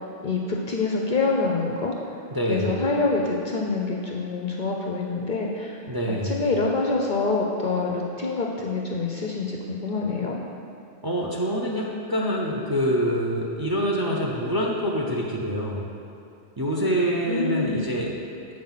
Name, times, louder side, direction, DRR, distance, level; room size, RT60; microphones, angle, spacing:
voice 1, 0.2-1.9 2.5-5.8 6.2-10.4 17.3-17.8, left 3 dB, 55° left, -1 dB, 0.6 m, -26 dB
voice 2, 2.3-2.8 5.9-6.4 11.0-15.9 16.6-18.1, equal, 25° right, -2 dB, 0.5 m, -26 dB
7.6 x 4.5 x 5.7 m, 2.6 s
omnidirectional pair, 1.2 m